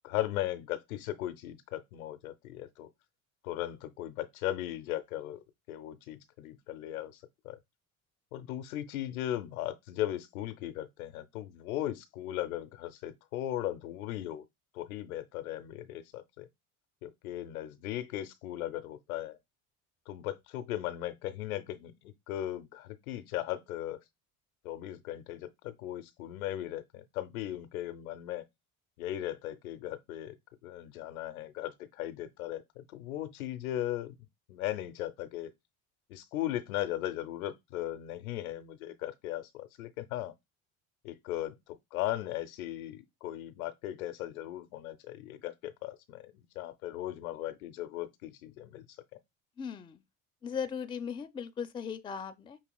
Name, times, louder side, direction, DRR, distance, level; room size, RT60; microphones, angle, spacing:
voice 1, 0.0-2.9 3.4-5.4 5.7-7.2 7.4-7.6 8.3-14.4 14.7-16.5 17.0-19.4 20.1-24.0 24.6-28.4 29.0-30.3 30.6-34.2 34.5-35.5 36.1-40.3 41.0-46.2 46.6-48.9, left 13 dB, 80° left, 0.6 m, -37 dB
voice 2, 49.6-50.0 50.4-52.6, left 7 dB, 15° left, 0.3 m, -38 dB
5.5 x 2.8 x 2.2 m
hypercardioid pair, 65°, 42 cm